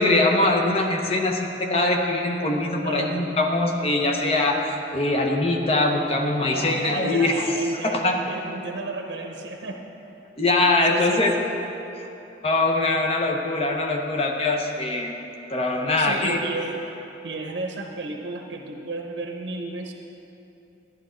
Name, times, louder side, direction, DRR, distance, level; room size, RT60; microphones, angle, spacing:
voice 1, 0.0-4.6 4.9-7.4 7.8-8.2 10.4-11.3 12.4-15.2 15.5-16.4, left 2 dB, 35° left, 2 dB, 0.9 m, -22 dB
voice 2, 2.8-3.2 6.5-9.9 10.9-11.2 15.9-16.8 17.2-19.9, right 2 dB, 80° right, 2 dB, 0.8 m, -33 dB
12.0 x 11.0 x 3.8 m, 3.0 s
head